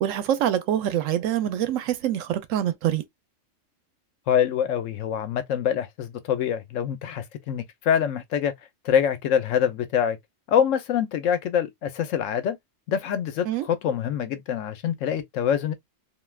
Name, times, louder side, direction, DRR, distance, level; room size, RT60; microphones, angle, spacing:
voice 1, 0.0-3.0 13.4-13.6, right 11 dB, 90° right, 1.0 m, -25 dB
voice 2, 4.3-8.5 8.8-10.2 10.5-12.6 12.9-15.7, left 8 dB, 80° left, 1.0 m, -25 dB
2.7 x 2.3 x 3.2 m
omnidirectional pair, 1.3 m